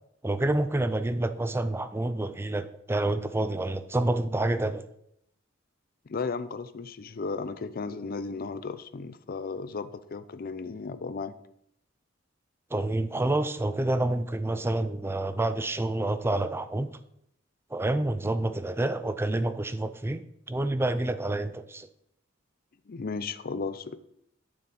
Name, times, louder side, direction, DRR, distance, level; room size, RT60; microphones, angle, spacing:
voice 1, 0.2-4.9 12.7-16.9 17.7-20.2 20.5-21.9, right 2 dB, 10° right, 0.4 m, -28 dB
voice 2, 6.1-11.3 22.9-24.0, left 4 dB, 50° left, 0.5 m, -35 dB
9.2 x 6.9 x 4.0 m
head